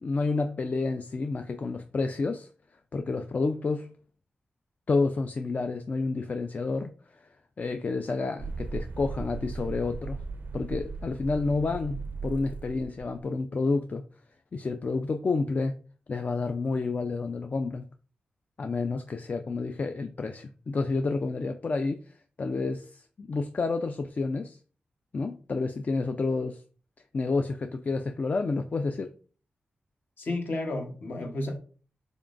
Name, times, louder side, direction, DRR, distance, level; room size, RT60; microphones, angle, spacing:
voice 1, 0.0-2.5 2.9-3.9 4.9-10.2 10.5-14.0 14.5-15.8 16.1-17.8 18.6-24.6 25.1-26.6 27.1-29.1, left 3 dB, 50° left, 0.3 m, -30 dB
sound 1, 8.4-13.2, right 4 dB, 60° right, 0.4 m, -37 dB
voice 2, 30.2-31.6, left 2 dB, 65° left, 1.0 m, -32 dB
3.8 x 3.6 x 2.5 m
cardioid pair, 55°, 4 cm